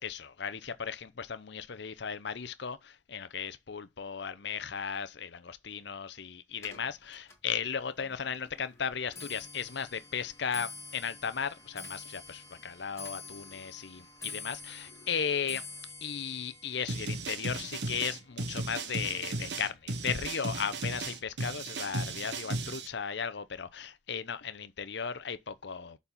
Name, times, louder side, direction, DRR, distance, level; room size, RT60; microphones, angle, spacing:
voice 1, 0.0-15.6 16.0-26.0, left 7 dB, 60° left, 0.7 m, -36 dB
Clock, 6.6-19.9 20.2-20.7 21.5-21.6 21.9-22.3 22.6-22.7, left 4 dB, 15° left, 2.1 m, -48 dB
Custom dnb loop, 16.9-22.9, right 2 dB, 65° right, 1.2 m, -36 dB
7.1 x 4.2 x 5.6 m
head